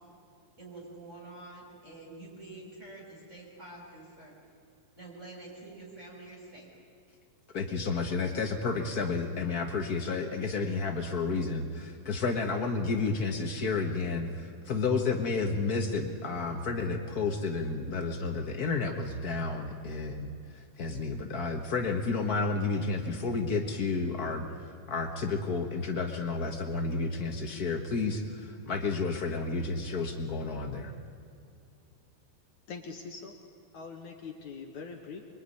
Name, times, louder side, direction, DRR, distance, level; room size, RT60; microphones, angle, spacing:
voice 1, 0.6-4.4 5.0-6.7, right 2 dB, 20° right, -3 dB, 7.3 m, -47 dB
voice 2, 7.5-30.9, left 4 dB, 90° left, 4 dB, 0.8 m, -31 dB
voice 3, 32.7-33.4 33.7-35.2, left 5 dB, 60° left, 3 dB, 2.8 m, -42 dB
25.5 x 23.0 x 9.9 m, 2.5 s
omnidirectional pair, 4.2 m